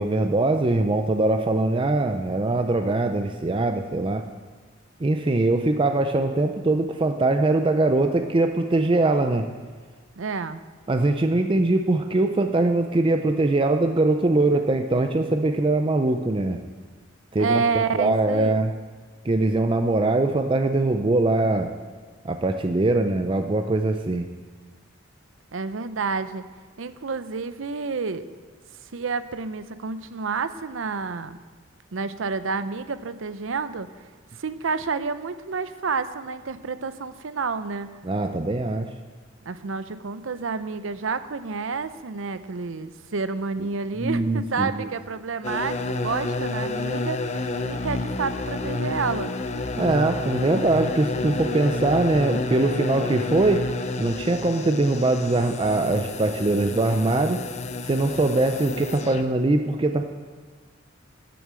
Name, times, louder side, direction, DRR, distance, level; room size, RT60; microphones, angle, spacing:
voice 1, 0.0-4.2 5.0-9.4 10.9-16.6 17.3-18.7 19.2-21.7 22.2-24.3 38.0-38.9 44.0-44.9 49.8-53.7 54.0-57.4 57.8-60.0, right 2 dB, 25° right, 5 dB, 0.4 m, -22 dB
voice 2, 10.2-10.6 17.4-18.6 25.5-26.4 26.8-28.2 28.9-31.4 31.9-33.9 34.3-37.9 39.5-49.3, right 4 dB, 70° right, 12 dB, 0.6 m, -29 dB
sound 1, 45.4-59.2, left 3 dB, 35° left, 0.5 m, -30 dB
10.5 x 7.0 x 7.5 m, 1.5 s
head